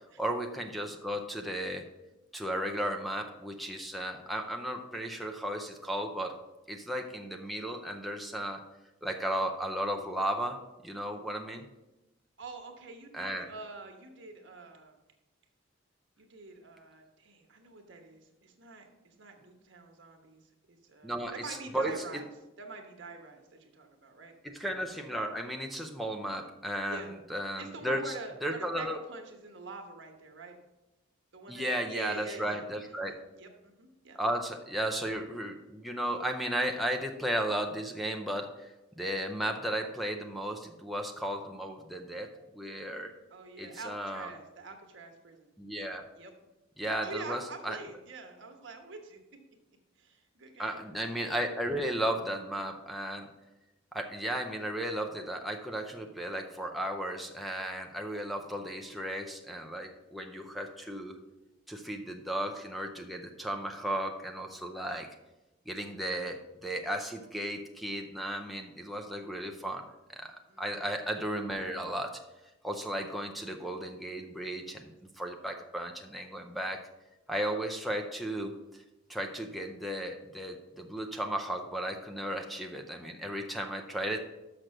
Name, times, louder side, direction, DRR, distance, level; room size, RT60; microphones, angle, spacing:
voice 1, 0.2-1.8 2.3-6.3 6.7-8.6 9.0-10.6 10.8-11.7 13.1-13.5 21.0-22.2 24.4-27.0 27.3-28.1 28.4-29.0 31.5-33.2 34.2-43.1 43.6-44.3 45.6-46.0 46.8-47.8 50.6-53.3 53.9-61.2 61.7-65.1 65.7-69.8 70.1-72.2 72.6-74.9 75.2-76.8 77.3-78.8 79.1-84.2, right 1 dB, ahead, 1 dB, 0.5 m, -35 dB
voice 2, 12.4-15.0 16.2-22.3 22.6-24.3 26.9-27.1 27.6-30.6 31.3-34.2 43.3-45.5 46.1-46.3 46.8-49.2 50.0-50.8 70.5-70.8, right 3 dB, 65° right, 4 dB, 1.2 m, -46 dB
6.3 x 6.0 x 6.5 m, 0.99 s
head